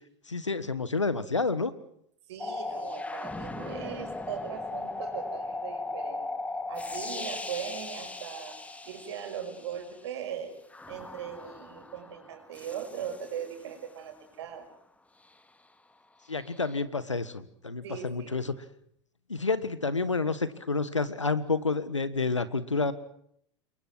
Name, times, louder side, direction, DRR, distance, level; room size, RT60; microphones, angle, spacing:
voice 1, 0.3-1.7 16.3-18.5 19.3-22.9, left 4 dB, 90° left, 15 dB, 1.6 m, -29 dB
voice 2, 2.3-6.2 6.7-10.5 10.9-14.7 17.8-18.4, right 8 dB, 65° right, 4 dB, 6.0 m, -39 dB
sound 1, 2.4-10.0 10.7-13.7 16.4-16.8, left 2 dB, 10° left, 1.9 m, -38 dB
28.5 x 23.0 x 6.3 m, 0.69 s
figure-of-eight pair, 85°, 15 cm